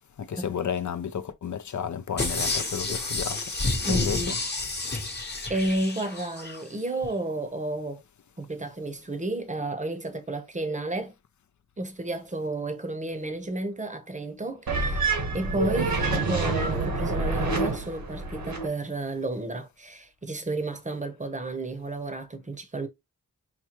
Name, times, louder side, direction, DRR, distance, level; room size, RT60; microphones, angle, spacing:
voice 1, 0.2-3.4 3.9-4.3, left 8 dB, 55° left, 0.6 m, -32 dB
sound 1, 2.2-6.6 7.0-7.1, left 3 dB, 30° left, 1.0 m, -30 dB
voice 2, 3.8-4.4 5.5-8.0 8.4-11.1 11.8-22.9, right 2 dB, 20° right, 0.8 m, -32 dB
sound 2, 14.7-18.7, right 3 dB, 75° right, 1.3 m, -27 dB
5.8 x 2.2 x 3.0 m
cardioid pair, 60°, 35 cm